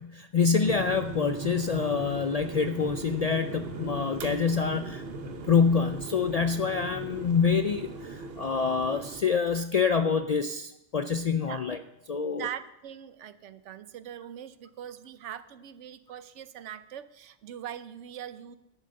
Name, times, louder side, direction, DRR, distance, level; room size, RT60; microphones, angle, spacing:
voice 1, 0.0-11.8 12.1-12.5, left 5 dB, 60° left, 9 dB, 0.4 m, -26 dB
sound 1, 0.6-9.2, right 4 dB, 60° right, 1.2 m, -39 dB
voice 2, 11.4-11.7 12.2-18.6, right 10 dB, 85° right, 13 dB, 1.0 m, -41 dB
11.0 x 7.7 x 6.4 m, 0.88 s
omnidirectional pair, 1.2 m